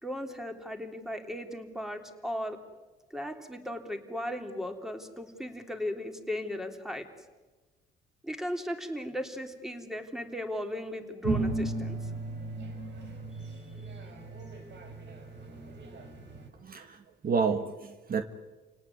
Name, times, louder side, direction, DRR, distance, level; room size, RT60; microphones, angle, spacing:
voice 1, 0.0-2.6 3.1-7.1 8.2-12.1 13.4-13.5, left 1 dB, ahead, 5 dB, 3.5 m, -36 dB
sound 1, 11.2-16.5, right 2 dB, 65° right, 4.7 m, -35 dB
voice 2, 16.6-18.2, right 5 dB, 50° right, 8 dB, 1.6 m, -30 dB
29.0 x 18.5 x 9.5 m, 1.2 s
cardioid pair, 90°, 20 cm